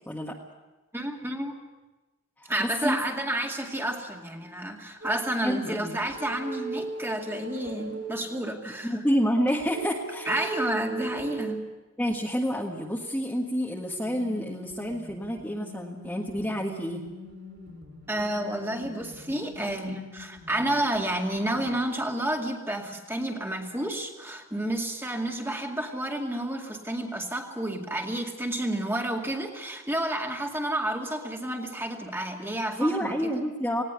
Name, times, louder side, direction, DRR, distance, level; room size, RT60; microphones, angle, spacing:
voice 1, 0.1-0.4 2.4-3.0 5.4-6.0 8.8-10.5 12.0-17.0 32.8-33.8, equal, 10° left, -2 dB, 1.6 m, -28 dB
voice 2, 0.9-1.6 2.5-9.0 10.3-11.6 18.1-33.3, right 1 dB, 10° right, 2 dB, 2.2 m, -30 dB
sound 1, 5.0-5.2 6.0-8.2 9.5-11.6 14.0-21.8, right 2 dB, 60° right, 6.4 m, -40 dB
19.0 x 17.5 x 8.1 m, 1.1 s
head